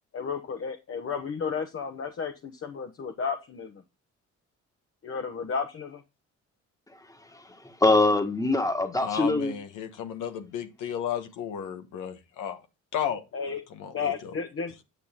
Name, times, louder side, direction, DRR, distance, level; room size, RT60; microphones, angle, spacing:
voice 1, 0.1-3.7 5.0-6.0 13.3-13.6 13.9-14.8, left 6 dB, 45° left, 1.1 m, -33 dB
voice 2, 7.3-9.5, left 2 dB, 10° left, 1.5 m, -24 dB
voice 3, 9.0-12.6 12.9-13.2 13.7-14.3, left 9 dB, 90° left, 1.3 m, -33 dB
9.6 x 6.1 x 3.6 m
cardioid pair, 90°, 30 cm